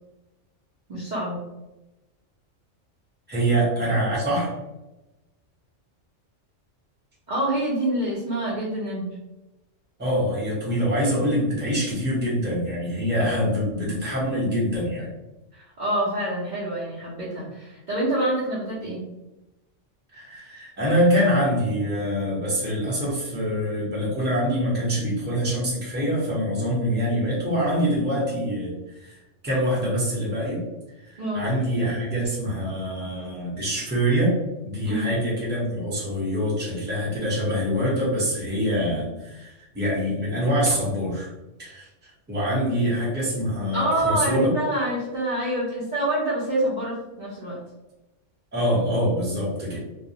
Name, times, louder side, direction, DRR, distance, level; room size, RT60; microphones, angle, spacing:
voice 1, 0.9-1.4 7.3-9.1 15.5-19.0 31.2-31.5 34.8-35.1 43.7-47.6, right 1 dB, 50° right, -8 dB, 0.6 m, -26 dB
voice 2, 3.3-4.5 10.0-15.1 20.1-30.6 31.0-34.3 34.6-41.3 41.6-44.5 48.5-49.8, equal, 10° right, -6 dB, 0.6 m, -25 dB
2.2 x 2.0 x 2.7 m, 1.0 s
omnidirectional pair, 1.3 m